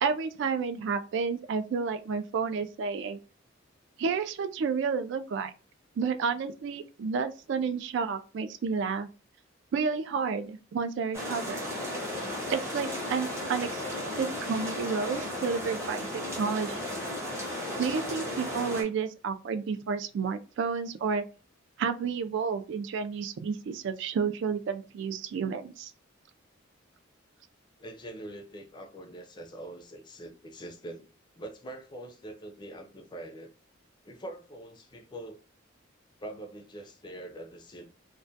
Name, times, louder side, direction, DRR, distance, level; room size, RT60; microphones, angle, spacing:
voice 1, 0.0-3.2 4.0-5.5 6.0-9.1 9.7-11.6 12.5-16.9 17.8-21.2 21.8-25.9, right 5 dB, 65° right, 0.3 m, -31 dB
sound 1, 11.1-18.8, left 1 dB, 15° right, 0.6 m, -35 dB
voice 2, 27.8-31.1 31.3-33.5 34.0-35.4 36.2-37.8, right 1 dB, 20° left, 0.4 m, -43 dB
2.2 x 2.1 x 2.6 m
head